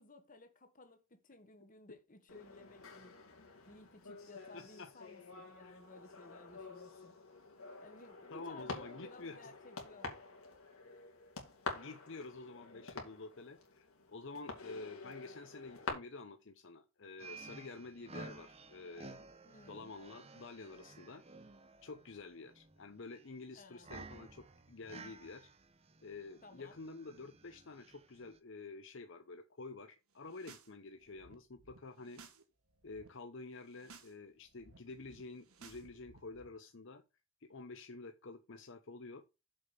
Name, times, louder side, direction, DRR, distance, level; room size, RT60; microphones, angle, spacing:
voice 1, 0.0-3.2 3.7-7.1 7.8-10.2 19.4-19.9 23.5-23.9 26.4-26.8, left 2 dB, 40° left, 1.5 m, -57 dB
sound 1, 2.3-15.9, left 3 dB, 75° left, 2.8 m, -49 dB
voice 2, 4.5-4.9 5.6-5.8 8.3-9.4 11.7-19.3 19.7-21.2 21.8-25.5 26.0-32.2 32.8-37.0 37.4-39.2, left 3 dB, 55° left, 0.8 m, -49 dB
sound 2, 17.2-28.4, right 3 dB, 30° right, 0.9 m, -54 dB
sound 3, 30.2-30.7 31.0-32.4 32.7-33.1 33.6-34.1 34.4-36.5, right 4 dB, 80° right, 1.8 m, -59 dB
7.3 x 5.1 x 6.9 m
head